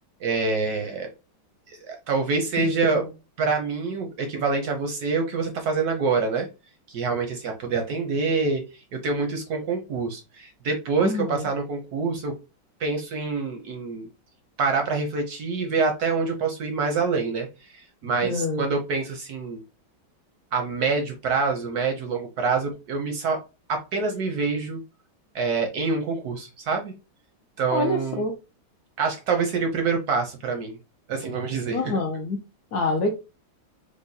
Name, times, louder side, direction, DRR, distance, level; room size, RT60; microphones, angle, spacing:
voice 1, 0.2-1.1 1.7-3.0 3.4-6.5 6.9-8.6 8.9-12.4 12.8-14.1 14.6-19.6 20.5-23.4 23.7-24.8 25.3-26.9 27.6-28.2 29.0-30.8 31.1-32.0, right 4 dB, 70° right, 4 dB, 0.9 m, -26 dB
voice 2, 2.6-3.1 11.0-11.4 18.2-18.6 27.7-28.3 31.7-32.4 32.7-33.1, left 2 dB, 75° left, 3 dB, 0.8 m, -26 dB
4.7 x 2.2 x 2.6 m, 0.29 s
omnidirectional pair, 2.2 m